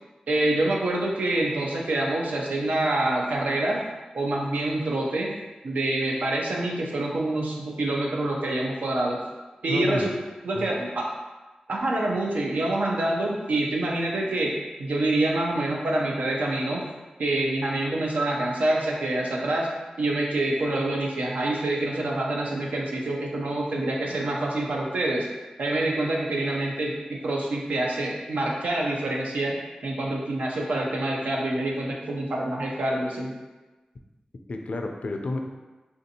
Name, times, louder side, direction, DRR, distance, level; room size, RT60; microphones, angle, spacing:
voice 1, 0.3-3.8 4.1-5.3 5.6-9.2 9.6-10.1 10.4-11.0 11.7-14.5 14.8-16.8 17.2-19.7 20.0-25.3 25.6-33.3, right 2 dB, 85° right, -2 dB, 0.5 m, -26 dB
voice 2, 9.7-10.1 10.5-10.7 34.5-35.5, left 2 dB, 60° left, 3 dB, 0.3 m, -30 dB
3.4 x 2.5 x 2.7 m, 1.2 s
cardioid pair, 50°, 3 cm